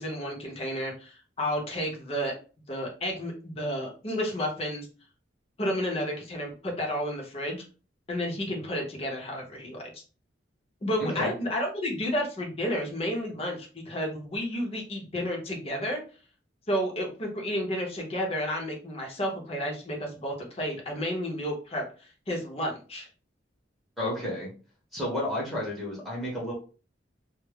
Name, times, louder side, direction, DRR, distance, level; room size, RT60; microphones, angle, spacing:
voice 1, 0.0-2.3 2.7-4.9 5.6-7.6 8.1-9.8 10.8-16.0 16.7-23.1, equal, 35° left, 0 dB, 0.7 m, -31 dB
voice 2, 11.0-11.3 24.0-24.5 24.9-26.5, left 1 dB, ahead, -5 dB, 0.8 m, -31 dB
2.2 x 2.0 x 3.2 m, 0.37 s
head